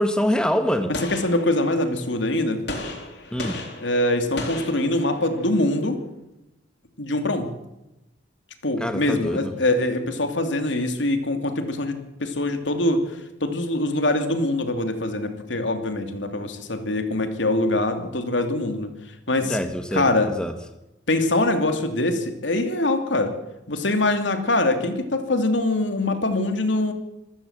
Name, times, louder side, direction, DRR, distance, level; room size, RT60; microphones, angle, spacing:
voice 1, 0.0-0.9 3.3-3.6 8.8-9.5 19.4-20.5, equal, 5° left, 1.5 m, -25 dB
voice 2, 0.9-2.6 3.8-6.0 7.0-7.5 8.6-13.0 13.4-18.9 19.3-19.6 19.9-20.3 21.1-23.3 23.7-26.9, left 2 dB, 85° left, 2.9 m, -23 dB
Gunshot gunfire, 0.9-2.0 2.7-5.5, left 2 dB, 65° left, 4.3 m, -35 dB
26.0 x 15.0 x 7.4 m
head